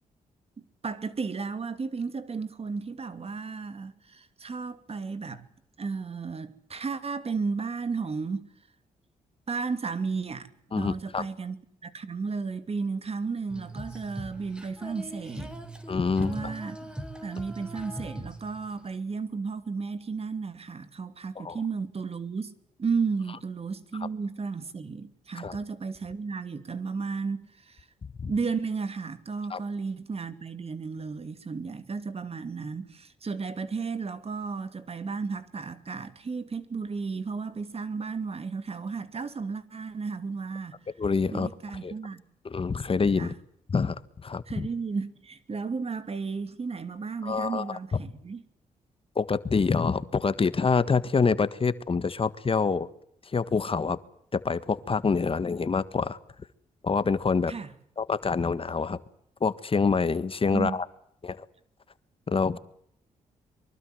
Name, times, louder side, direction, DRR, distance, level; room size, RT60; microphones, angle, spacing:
voice 1, 0.8-5.4 5.8-8.5 9.5-10.5 10.8-15.5 16.2-16.9 17.2-22.5 22.8-27.9 28.3-40.8 41.3-42.2 43.2-43.3 44.5-48.4 57.5-57.7 60.5-60.8, right 4 dB, 45° right, 2.7 m, -33 dB
voice 2, 10.7-11.2 15.9-16.5 21.3-21.6 25.4-25.6 28.2-28.3 29.5-29.6 41.0-41.5 41.8-41.9 42.4-43.3 43.7-44.0 44.2-44.7 47.2-47.6 49.1-52.9 53.3-54.0 54.3-56.2 56.8-57.5 58.0-59.0 59.4-60.8 61.2-61.4 62.3-62.6, left 5 dB, 40° left, 1.5 m, -26 dB
Female singing, 13.5-18.9, right 1 dB, 5° right, 4.4 m, -41 dB
24.0 x 23.5 x 7.9 m
cardioid pair, 65°, 14 cm